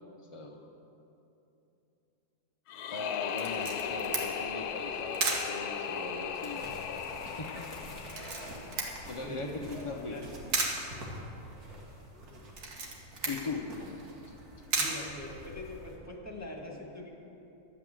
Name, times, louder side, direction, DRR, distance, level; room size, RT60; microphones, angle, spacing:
sound 1, 2.7-9.7, left 7 dB, 80° left, 1.1 m, -37 dB
voice 1, 2.9-6.6 7.3-7.8 9.1-10.2 13.2-13.7, left 4 dB, 40° left, 0 dB, 0.4 m, -39 dB
Camera, 3.4-15.9, right 3 dB, 90° right, 2.0 m, -38 dB
sound 2, 6.3-16.0, equal, 75° right, 2.3 m, -48 dB
voice 2, 9.2-10.3 14.8-17.2, left 1 dB, 10° left, -1 dB, 1.5 m, -43 dB
11.5 x 8.2 x 7.6 m, 2.9 s
omnidirectional pair, 1.6 m